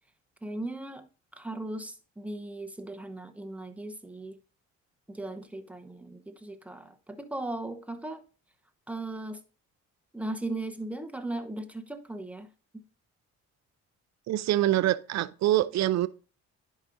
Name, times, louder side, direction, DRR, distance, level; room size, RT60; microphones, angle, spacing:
voice 1, 0.4-1.1 1.4-4.4 5.1-8.2 8.9-9.4 10.1-12.5, right 2 dB, 5° right, 0.8 m, -37 dB
voice 2, 14.3-16.1, right 14 dB, 65° right, 0.5 m, -25 dB
10.5 x 5.0 x 2.6 m
cardioid pair, 90°, 30 cm